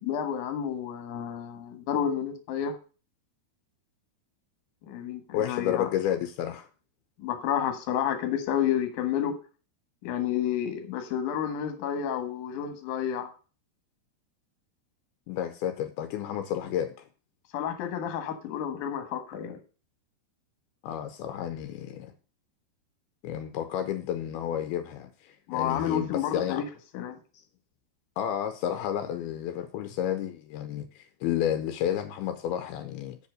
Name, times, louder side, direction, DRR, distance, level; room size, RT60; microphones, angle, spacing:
voice 1, 0.0-2.7 4.8-5.9 7.2-9.3 10.0-13.3 17.5-19.6 25.5-26.6 26.9-27.2, left 9 dB, 60° left, 2.5 m, -30 dB
voice 2, 5.3-6.7 15.3-17.1 20.8-22.1 23.2-26.6 28.2-33.2, left 10 dB, 85° left, 2.6 m, -31 dB
7.3 x 5.6 x 6.4 m
omnidirectional pair, 4.6 m